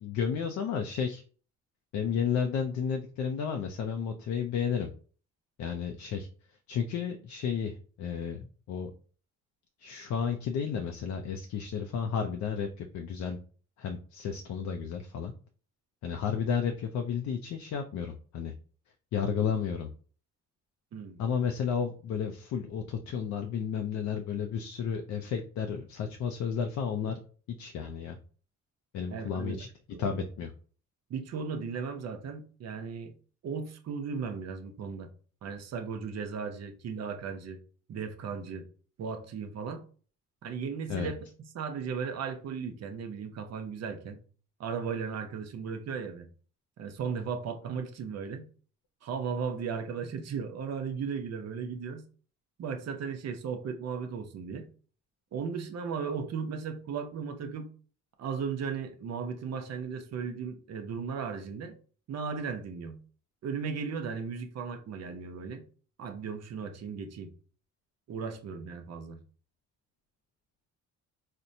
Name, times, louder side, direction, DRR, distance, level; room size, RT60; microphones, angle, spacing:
voice 1, 0.0-1.2 1.9-4.9 5.6-6.3 6.7-8.9 9.8-13.4 13.8-15.3 16.0-18.5 19.1-19.9 21.2-27.2 27.6-28.2 28.9-29.7 30.0-30.5 40.9-41.1, left 7 dB, 65° left, 0.5 m, -32 dB
voice 2, 29.1-29.6 29.9-30.3 31.1-33.1 33.4-35.1 35.4-37.6 37.9-38.7 39.0-39.8 40.4-41.3 41.5-44.2 44.6-46.2 46.8-48.5 49.0-52.0 52.6-54.7 55.3-57.7 58.2-61.8 62.1-63.0 63.4-65.6 66.0-67.3 68.1-69.2, right 6 dB, 60° right, 0.7 m, -36 dB
4.2 x 2.1 x 2.6 m
cardioid pair, 90°, 30 cm